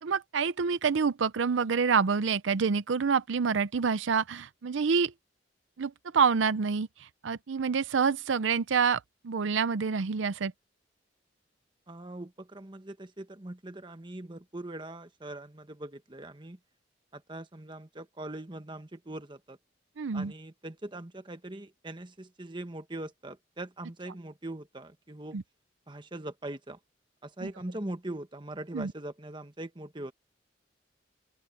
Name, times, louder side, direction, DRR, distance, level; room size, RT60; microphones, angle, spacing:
voice 1, 0.0-5.1 5.8-10.5 20.0-20.3 25.3-25.4 27.4-27.5 28.7-28.9, right 5 dB, 85° right, 0.5 m, -27 dB
voice 2, 11.9-16.6 17.1-19.6 20.1-25.4 25.9-26.8 27.2-30.1, right 1 dB, 25° right, 1.3 m, -41 dB
open air
head